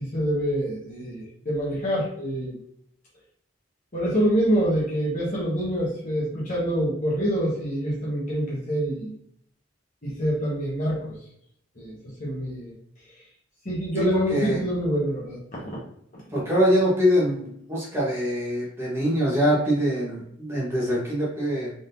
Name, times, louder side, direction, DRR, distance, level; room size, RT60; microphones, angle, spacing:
voice 1, 0.0-2.5 3.9-9.2 10.0-11.2 11.8-12.7 13.6-15.6 16.3-16.4, equal, 45° left, -6 dB, 1.2 m, -26 dB
voice 2, 13.9-14.6 16.3-21.7, equal, 15° right, -6 dB, 1.2 m, -24 dB
3.9 x 3.7 x 2.6 m, 0.71 s
head